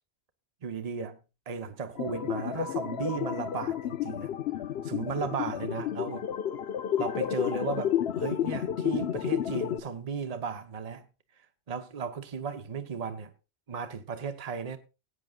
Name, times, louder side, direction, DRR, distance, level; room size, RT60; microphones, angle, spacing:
voice 1, 0.6-1.2 1.5-4.3 4.8-6.3 7.0-11.0 11.7-13.3 13.7-14.8, right 5 dB, 35° right, 1.0 m, -35 dB
sound 1, 2.0-9.8, left 10 dB, 65° left, 0.9 m, -31 dB
19.0 x 9.2 x 2.4 m
omnidirectional pair, 1.2 m